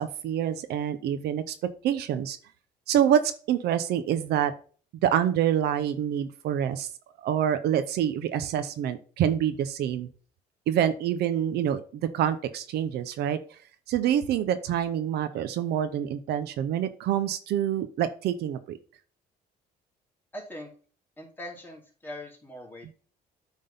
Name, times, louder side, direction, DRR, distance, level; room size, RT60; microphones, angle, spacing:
voice 1, 0.0-1.6 1.8-2.4 2.9-4.5 5.0-6.9 7.2-10.1 10.7-13.6 13.9-18.8, right 10 dB, 75° right, 11 dB, 0.8 m, -26 dB
voice 2, 20.3-20.7 21.2-22.9, left 1 dB, 10° left, -1 dB, 2.8 m, -41 dB
8.9 x 3.7 x 5.5 m, 0.41 s
cardioid pair, 110°, 17 cm